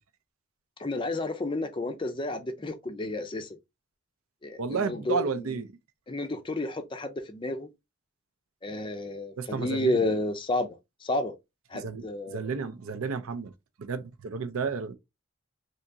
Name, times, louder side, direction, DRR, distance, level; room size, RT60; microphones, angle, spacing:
voice 1, 0.8-3.6 4.4-5.6 6.1-7.7 8.6-11.3 11.7-12.5, left 2 dB, 25° left, 0.4 m, -31 dB
voice 2, 4.6-5.7 9.4-10.0 11.7-13.5 13.8-14.9, right 5 dB, 75° right, 0.5 m, -32 dB
3.4 x 2.8 x 2.6 m
head